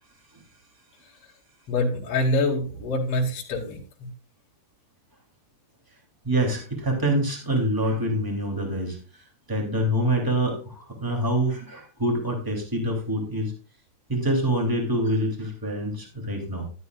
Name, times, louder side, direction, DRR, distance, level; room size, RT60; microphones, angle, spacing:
voice 1, 1.7-4.1, left 2 dB, 45° left, -2 dB, 2.4 m, -25 dB
voice 2, 6.2-9.0 9.5-13.5 14.1-16.7, right 1 dB, 5° right, 0 dB, 2.2 m, -25 dB
12.0 x 11.0 x 2.4 m, 0.37 s
omnidirectional pair, 4.7 m